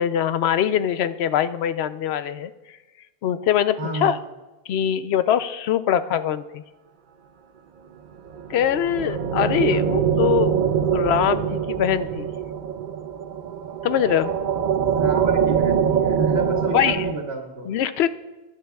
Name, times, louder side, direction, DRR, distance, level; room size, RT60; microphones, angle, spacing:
voice 1, 0.0-2.5 3.2-4.2 4.7-6.6 8.5-10.5 10.9-12.3 13.8-14.3 16.7-17.0 17.7-18.1, left 10 dB, 85° left, 13 dB, 0.8 m, -22 dB
voice 2, 3.8-4.2 9.7-9.8 14.9-17.7, right 3 dB, 75° right, 1 dB, 1.9 m, -30 dB
sound 1, 8.3-17.1, right 8 dB, 55° right, 0.7 m, -23 dB
21.0 x 10.5 x 2.3 m, 1.1 s
omnidirectional pair, 1.0 m